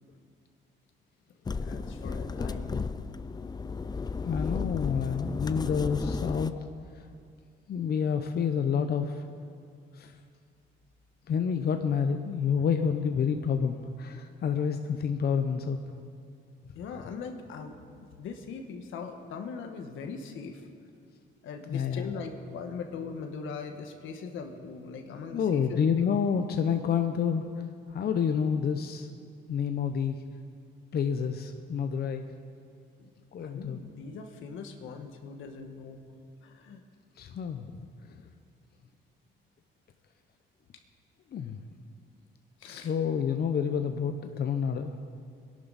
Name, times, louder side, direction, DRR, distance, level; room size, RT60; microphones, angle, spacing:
sound 1, 1.5-6.5, left 4 dB, 20° left, 0.4 m, -34 dB
voice 1, 1.6-2.9 16.7-20.7 21.4-25.8 26.3-26.4 31.5-31.6 33.0-33.1 33.4-36.0 36.4-36.8 42.6-42.9 44.3-44.4, left 5 dB, 85° left, 5 dB, 1.4 m, -41 dB
voice 2, 4.2-6.5 7.7-9.2 10.0-10.1 11.3-15.8 21.7-22.1 25.3-27.5 27.9-29.1 29.5-30.2 30.9-32.3 33.3-33.8 37.2-37.7 41.3-41.6 42.6-44.9, left 7 dB, 55° left, 6 dB, 0.8 m, -28 dB
21.5 x 11.5 x 4.1 m, 2.3 s
cardioid pair, 90°, 20 cm